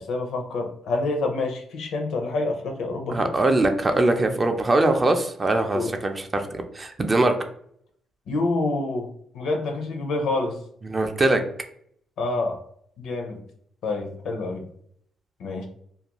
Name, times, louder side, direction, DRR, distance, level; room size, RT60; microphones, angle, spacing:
voice 1, 0.0-3.3 5.7-5.9 8.3-9.1 9.3-10.6 12.2-12.6 13.0-13.4 13.8-14.6 15.4-15.7, left 2 dB, 75° left, 4 dB, 0.5 m, -27 dB
voice 2, 3.1-7.3 10.8-11.4, right 2 dB, 25° right, 6 dB, 0.4 m, -22 dB
2.4 x 2.2 x 2.9 m, 0.65 s
cardioid pair, 90°, 0 cm